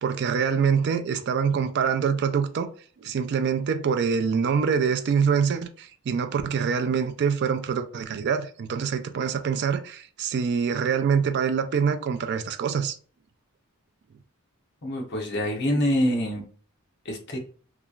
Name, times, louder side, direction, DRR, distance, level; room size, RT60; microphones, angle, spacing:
voice 1, 0.0-2.7 3.0-13.0, right 6 dB, 50° right, 0.3 m, -25 dB
voice 2, 14.8-16.4 17.0-17.4, equal, 50° left, 0.8 m, -25 dB
2.9 x 2.4 x 2.3 m
head